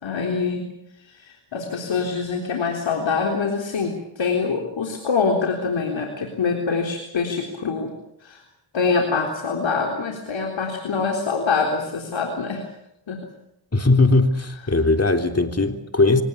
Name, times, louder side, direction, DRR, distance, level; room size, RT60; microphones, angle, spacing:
voice 1, 0.0-0.7 1.2-7.9 8.2-8.4 8.7-12.7 13.1-13.2, left 5 dB, 70° left, 2 dB, 3.8 m, -24 dB
voice 2, 13.7-16.2, left 2 dB, 30° left, 6 dB, 3.4 m, -19 dB
25.0 x 18.5 x 8.5 m, 0.78 s
supercardioid pair, 45°, 47 cm